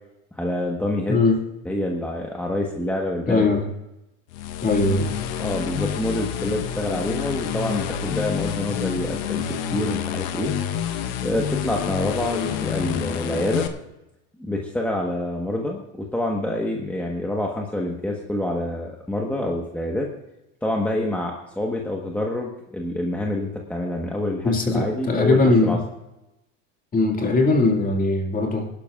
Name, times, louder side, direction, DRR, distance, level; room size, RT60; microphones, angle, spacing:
voice 1, 0.3-1.2 1.6-3.6 5.4-10.5 11.2-13.7 14.4-20.1 20.6-25.8, left 1 dB, 5° left, 0 dB, 1.3 m, -27 dB
voice 2, 1.1-1.4 3.3-3.7 4.6-5.2 24.4-25.8 26.9-28.7, left 3 dB, 25° left, 2 dB, 2.2 m, -20 dB
sound 1, 4.3-13.7, left 9 dB, 75° left, 1.1 m, -28 dB
20.5 x 12.0 x 2.5 m, 0.92 s
supercardioid pair, 125°, 34 cm